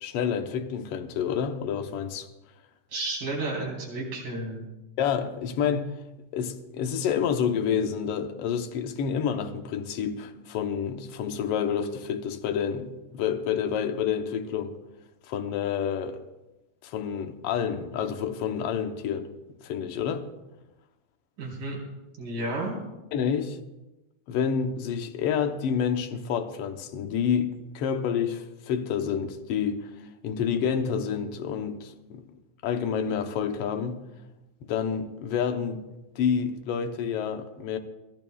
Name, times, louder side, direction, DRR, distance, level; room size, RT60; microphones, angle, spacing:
voice 1, 0.0-2.3 5.0-5.9 6.3-14.8 15.3-16.2 16.8-19.3 19.6-20.3 23.1-23.6 24.3-29.8 30.2-32.2 32.6-34.0 34.6-35.8 36.2-37.8, left 7 dB, 65° left, 1.6 m, -28 dB
voice 2, 2.9-4.7 21.4-21.8 22.2-22.8, right 2 dB, 85° right, 5.4 m, -32 dB
23.0 x 14.5 x 2.3 m
omnidirectional pair, 3.5 m